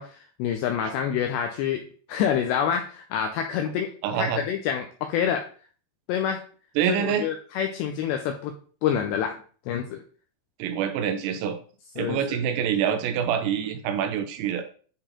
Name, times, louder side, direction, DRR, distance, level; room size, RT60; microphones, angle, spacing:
voice 1, 0.0-1.8 2.1-3.9 4.2-5.4 6.1-6.4 6.9-8.5 8.8-9.3 9.7-10.0 12.0-12.4, left 8 dB, 85° left, 5 dB, 2.4 m, -27 dB
voice 2, 4.0-4.4 6.8-7.3 10.6-11.6 12.0-14.7, right 8 dB, 85° right, 8 dB, 3.5 m, -26 dB
10.0 x 4.4 x 3.7 m, 0.42 s
omnidirectional pair, 5.7 m